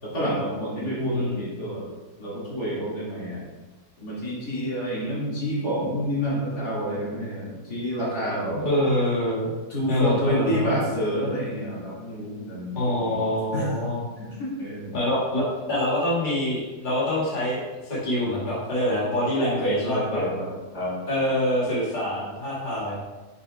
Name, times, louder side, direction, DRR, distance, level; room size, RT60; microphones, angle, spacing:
voice 1, 0.0-1.9 2.2-3.5 4.0-8.6 9.7-13.2 13.5-13.7 14.2-15.1 19.7-20.9, equal, 80° left, -8 dB, 2.8 m, -29 dB
voice 2, 1.0-1.4 8.5-9.5 9.9-10.7 12.7-14.0 14.9-20.2 21.1-23.0, left 1 dB, 30° left, -8 dB, 2.0 m, -25 dB
6.8 x 6.7 x 2.4 m, 1.2 s
omnidirectional pair, 1.7 m